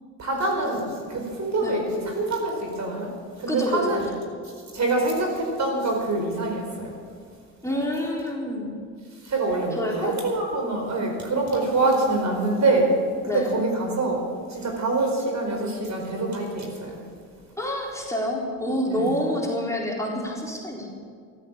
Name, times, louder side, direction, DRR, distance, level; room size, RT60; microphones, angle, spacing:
voice 1, 0.2-3.1 3.4-4.1 4.4-6.9 9.2-12.9 13.3-17.0 18.9-19.1, right 2 dB, 40° right, 1 dB, 4.5 m, -25 dB
voice 2, 3.5-3.8 7.6-8.7 9.7-10.2 13.3-13.6 17.6-20.9, left 1 dB, 5° left, -3 dB, 3.9 m, -28 dB
13.5 x 13.0 x 7.3 m, 2.2 s
hypercardioid pair, 70°, 42 cm